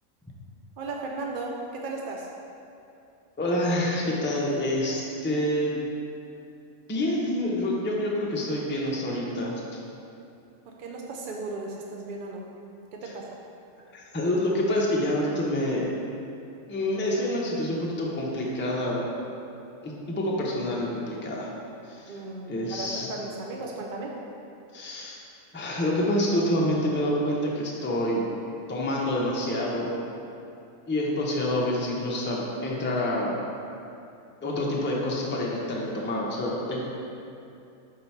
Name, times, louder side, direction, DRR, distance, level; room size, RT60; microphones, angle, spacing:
voice 1, 0.8-2.3 10.7-12.4 12.9-13.2 22.1-24.1, right 3 dB, 60° right, -1 dB, 0.5 m, -36 dB
voice 2, 3.4-5.8 6.9-9.6 13.9-15.9 16.7-19.1 19.8-21.5 21.9-22.1 22.5-23.1 24.7-25.2 25.5-28.2 28.7-29.9 30.9-33.3 34.4-36.8, left 1 dB, 15° left, -4 dB, 0.4 m, -27 dB
4.5 x 3.8 x 5.6 m, 2.6 s
omnidirectional pair, 1.4 m